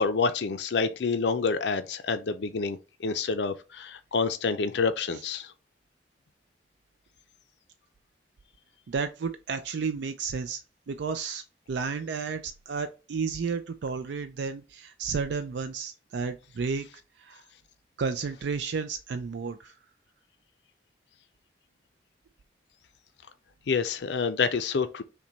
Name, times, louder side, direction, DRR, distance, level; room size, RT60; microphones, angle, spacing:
voice 1, 0.0-5.5 23.7-25.0, left 4 dB, 80° left, 0.5 m, -28 dB
voice 2, 8.9-10.6 10.9-16.9 17.2-17.4 18.0-19.7, right 5 dB, 80° right, 0.4 m, -32 dB
5.8 x 2.2 x 3.9 m
head